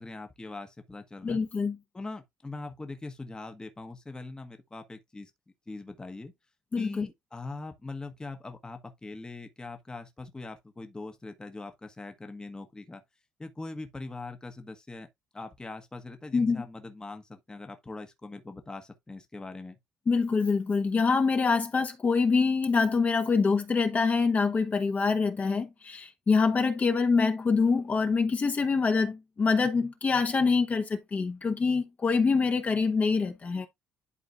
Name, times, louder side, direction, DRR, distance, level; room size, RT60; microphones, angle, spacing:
voice 1, 0.0-1.4 1.9-5.3 5.7-6.3 6.8-13.0 13.4-15.1 15.3-19.8, left 3 dB, 20° left, 1.3 m, -41 dB
voice 2, 1.2-1.8 6.7-7.1 16.3-16.6 20.1-33.7, left 4 dB, 40° left, 1.3 m, -25 dB
11.0 x 3.9 x 2.5 m
supercardioid pair, 70°, 4 cm